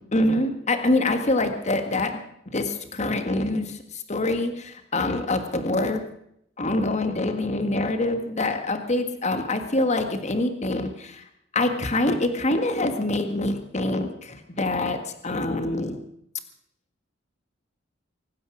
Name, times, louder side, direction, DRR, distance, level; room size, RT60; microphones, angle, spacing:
voice 1, 0.1-2.2 2.5-6.0 6.6-11.2 11.5-15.0 15.2-16.0, left 2 dB, 35° left, 7 dB, 1.7 m, -25 dB
24.0 x 9.5 x 6.3 m, 0.74 s
head